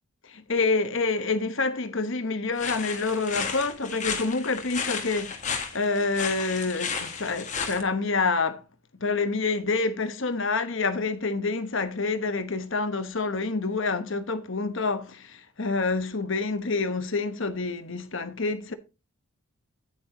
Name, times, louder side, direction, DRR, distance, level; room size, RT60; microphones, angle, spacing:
voice 1, 0.2-5.4 5.7-8.6 9.0-18.7, left 3 dB, 55° left, 1.1 m, -27 dB
sound 1, 2.6-7.8, left 6 dB, 35° left, 1.6 m, -33 dB
9.4 x 9.2 x 2.8 m
head